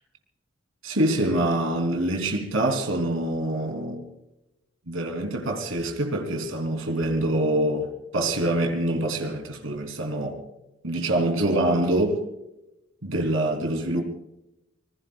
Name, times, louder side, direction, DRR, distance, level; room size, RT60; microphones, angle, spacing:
voice 1, 0.8-4.0 4.9-10.4 10.8-12.2 13.0-14.0, right 1 dB, 90° right, 3.4 m, -25 dB
27.5 x 21.0 x 2.4 m
head